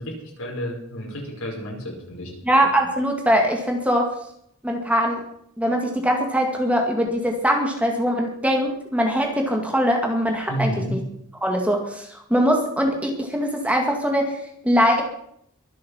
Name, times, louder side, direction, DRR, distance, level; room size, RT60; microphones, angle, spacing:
voice 1, 0.0-2.3 10.5-11.0, equal, 75° left, 0 dB, 5.5 m, -30 dB
voice 2, 2.5-4.1 4.6-5.2 5.6-11.0 11.4-14.4 14.6-15.0, equal, 5° right, 2 dB, 2.1 m, -22 dB
23.0 x 8.6 x 5.7 m, 0.70 s
head